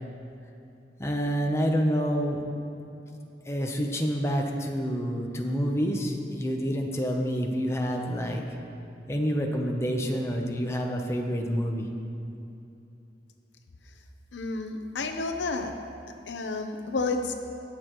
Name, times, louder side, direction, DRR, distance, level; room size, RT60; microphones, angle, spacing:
voice 1, 1.0-2.4 3.5-8.4 9.1-11.9, equal, 15° left, 1 dB, 0.8 m, -28 dB
voice 2, 14.3-15.8 16.3-17.3, left 3 dB, 90° left, 5 dB, 0.8 m, -30 dB
19.5 x 6.7 x 3.1 m, 2.8 s
head